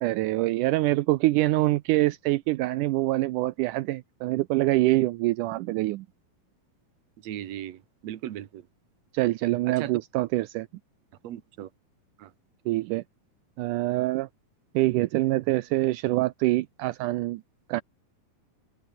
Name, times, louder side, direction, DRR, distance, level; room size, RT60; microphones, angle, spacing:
voice 1, 0.0-6.1 9.1-10.7 12.7-13.0 13.6-14.3 14.7-17.4 17.7-17.8, right 18 dB, 80° right, 1.9 m, -25 dB
voice 2, 7.2-8.6 9.7-10.0 11.2-11.7 12.2-12.3, right 12 dB, 60° right, 2.1 m, -37 dB
open air
omnidirectional pair, 4.3 m